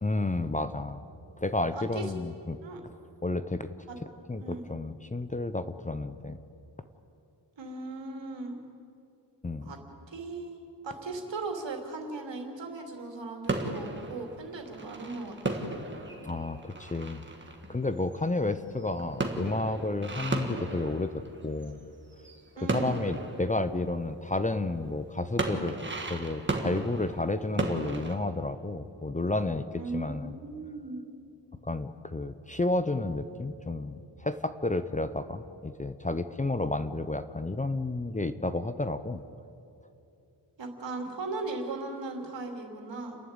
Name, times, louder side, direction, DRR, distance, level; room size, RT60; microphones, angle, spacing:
voice 1, 0.0-1.0 1.4-2.6 3.2-3.7 4.3-6.4 9.4-9.7 16.2-17.2 17.7-21.8 22.7-25.7 26.1-29.7 29.9-30.3 31.6-39.2, left 2 dB, 20° left, 11 dB, 0.5 m, -31 dB
voice 2, 1.7-2.1 2.6-2.8 4.4-4.6 7.6-8.6 9.6-9.8 10.1-15.7 22.6-23.0 29.8-31.0 40.6-43.2, right 3 dB, 85° right, 3 dB, 2.9 m, -38 dB
sound 1, 13.5-21.8 22.1-24.7 25.1-28.2, right 2 dB, 25° right, 1.7 m, -35 dB
30.0 x 11.5 x 8.8 m, 2.6 s
wide cardioid pair, 165°, 43 cm